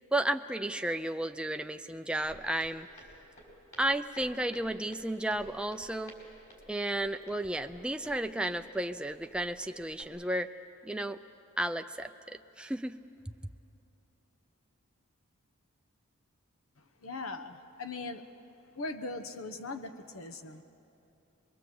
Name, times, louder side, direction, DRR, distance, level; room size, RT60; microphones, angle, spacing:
voice 1, 0.1-2.9 3.8-6.1 6.7-10.5 10.8-11.2 11.6-13.0, right 1 dB, 5° right, 7 dB, 0.4 m, -33 dB
Walk footsteps, 2.2-10.0, equal, 35° left, 4.9 m, -54 dB
voice 2, 17.0-18.2 18.8-20.6, left 3 dB, 75° left, 7 dB, 1.1 m, -40 dB
23.5 x 23.0 x 7.7 m, 2.8 s
head